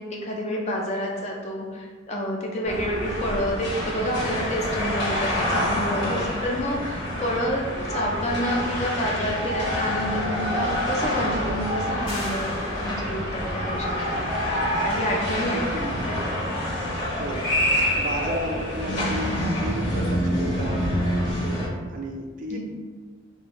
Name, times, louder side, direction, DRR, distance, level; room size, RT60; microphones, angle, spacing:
voice 1, 0.0-14.2 14.8-16.2 22.5-22.6, equal, 35° left, -1 dB, 0.4 m, -29 dB
sound 1, 2.6-21.7, equal, 60° left, 1.2 m, -27 dB
sound 2, 12.0-13.4, left 1 dB, 85° left, 1.4 m, -38 dB
voice 2, 15.5-15.9 17.2-17.5 18.0-22.6, right 1 dB, 40° right, 2 dB, 0.3 m, -34 dB
2.6 x 2.4 x 2.9 m, 1.4 s
head